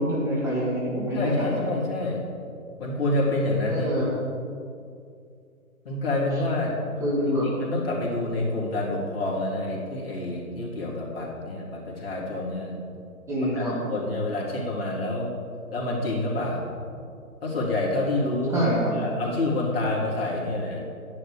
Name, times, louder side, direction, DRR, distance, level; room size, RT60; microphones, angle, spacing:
voice 1, 0.0-1.6 3.7-4.1 7.0-7.5 13.3-13.8 18.5-18.9, equal, 5° right, -8 dB, 2.2 m, -26 dB
voice 2, 1.1-2.2 2.8-4.0 5.8-6.7 7.4-12.8 13.4-15.3 15.7-16.7 17.4-18.7 18.9-20.8, left 2 dB, 40° left, -3 dB, 3.2 m, -28 dB
12.5 x 10.5 x 5.1 m, 2.4 s
figure-of-eight pair, 140°, 43 cm